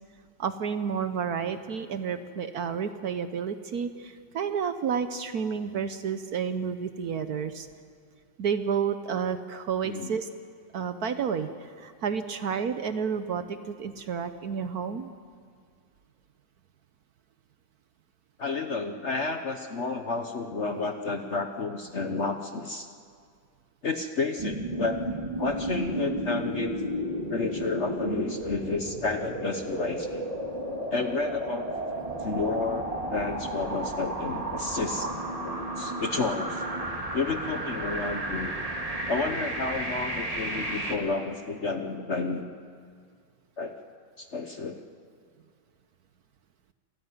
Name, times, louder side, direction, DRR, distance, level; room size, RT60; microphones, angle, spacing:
voice 1, 0.4-7.7 8.4-10.3 10.7-15.1, right 7 dB, 60° right, 10 dB, 1.2 m, -30 dB
voice 2, 18.4-22.9 23.8-26.8 27.3-30.3 30.9-31.7 32.2-35.1 35.4-36.6 37.1-38.5 39.1-42.5 43.6-43.7 44.2-44.8, left 3 dB, 45° left, 6 dB, 1.0 m, -31 dB
sound 1, 24.4-41.0, right 1 dB, 20° right, 2.1 m, -33 dB
26.5 x 15.5 x 9.5 m, 2.1 s
omnidirectional pair, 2.1 m